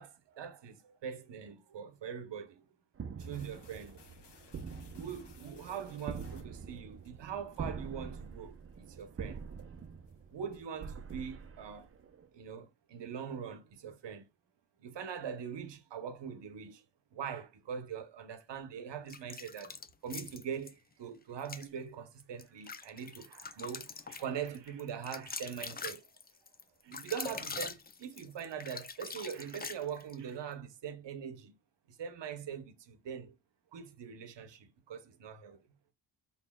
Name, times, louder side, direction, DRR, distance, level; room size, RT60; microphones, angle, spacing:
voice 1, 0.0-2.7 3.2-4.1 5.0-9.5 10.3-11.9 12.3-14.3 14.8-16.8 17.1-19.7 20.0-26.0 26.8-31.5 31.9-33.4 33.7-35.6, right 7 dB, 65° right, 0.9 m, -42 dB
sound 1, 2.9-12.3, right 5 dB, 30° right, 0.5 m, -45 dB
sound 2, 3.2-7.1 7.6-7.7 8.2-8.3 8.7-9.0 9.5-9.8 10.1-10.2 10.5-11.3, left 4 dB, 60° left, 1.3 m, -59 dB
sound 3, 19.1-20.7 21.4-21.7 22.2-30.2, left 5 dB, 25° left, 0.4 m, -43 dB
4.1 x 3.7 x 2.2 m
cardioid pair, 95°, 45 cm